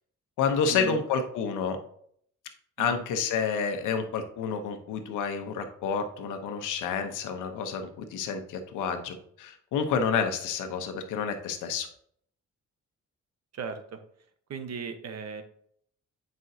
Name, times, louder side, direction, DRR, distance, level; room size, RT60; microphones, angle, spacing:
voice 1, 0.4-1.8 2.8-11.9, left 6 dB, 85° left, 7 dB, 1.0 m, -29 dB
voice 2, 13.5-14.0 14.5-15.4, right 5 dB, 55° right, 8 dB, 1.1 m, -37 dB
9.0 x 5.4 x 2.8 m, 0.64 s
cardioid pair, 90°, 30 cm